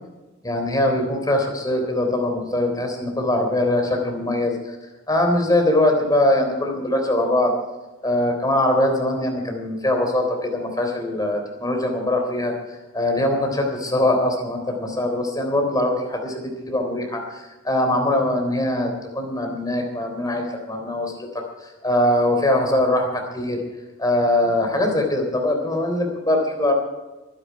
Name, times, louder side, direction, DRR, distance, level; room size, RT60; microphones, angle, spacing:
voice 1, 0.4-4.8 5.1-7.5 8.0-21.1 21.6-23.6 24.0-26.7, left 1 dB, 20° left, 3 dB, 3.7 m, -22 dB
23.0 x 10.5 x 4.8 m, 1.1 s
head